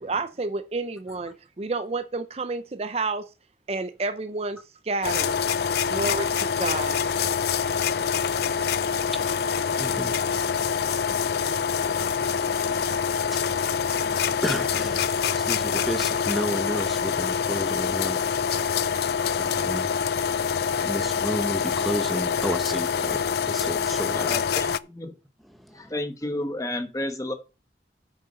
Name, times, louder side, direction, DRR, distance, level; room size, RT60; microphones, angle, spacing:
voice 1, 0.0-3.2 3.7-4.6 4.8-5.3 5.9-7.0, right 3 dB, 35° right, 0.5 m, -30 dB
sound 1, 5.0-24.8, left 6 dB, 60° left, 0.4 m, -25 dB
voice 2, 7.6-24.4 25.4-25.9 26.2-26.3, equal, ahead, 1.0 m, -35 dB
voice 3, 24.2-25.1 25.7-27.3, left 1 dB, 20° left, 1.4 m, -31 dB
8.8 x 6.6 x 5.4 m
head